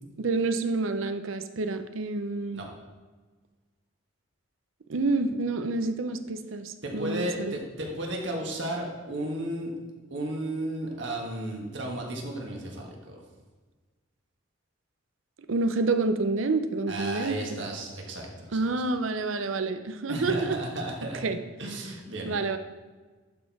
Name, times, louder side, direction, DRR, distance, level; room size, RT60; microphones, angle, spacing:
voice 1, 0.2-2.6 4.9-7.6 15.5-17.7 18.5-20.6 21.2-21.4 22.2-22.6, right 3 dB, 80° right, 9 dB, 0.6 m, -28 dB
voice 2, 6.8-9.7 10.1-13.2 16.9-18.6 20.1-21.2 21.6-22.3, right 1 dB, 60° right, 1 dB, 1.6 m, -34 dB
11.5 x 4.4 x 4.7 m, 1.3 s
head